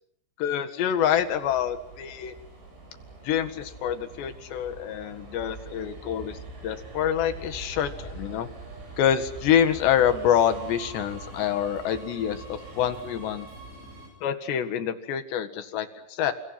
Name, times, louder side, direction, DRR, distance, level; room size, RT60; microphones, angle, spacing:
voice 1, 0.4-2.4 3.2-8.5 9.0-13.5 14.2-16.3, left 9 dB, 70° left, 9 dB, 3.9 m, -26 dB
Subway metro underground, 1.0-14.1, right 3 dB, 90° right, 10.5 m, -43 dB
29.0 x 28.5 x 6.0 m, 0.72 s
omnidirectional pair, 5.4 m